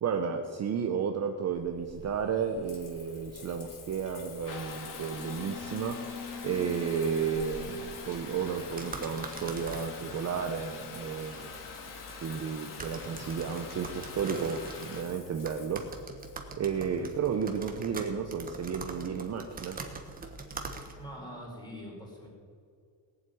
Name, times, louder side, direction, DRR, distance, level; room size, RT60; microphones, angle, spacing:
voice 1, 0.0-11.5 12.2-15.9 16.6-19.8, right 6 dB, 35° right, 5 dB, 0.9 m, -33 dB
Water tap faucet / Bathtub (filling or washing) / Trickle dribble, 1.5-20.4, left 5 dB, 45° left, 2.4 m, -44 dB
sound 1, 8.7-21.2, right 3 dB, 20° right, 1.4 m, -44 dB
voice 2, 21.0-22.3, equal, 10° left, -2 dB, 4.7 m, -44 dB
18.5 x 7.7 x 9.5 m, 2.3 s
cardioid pair, 160°, 45 cm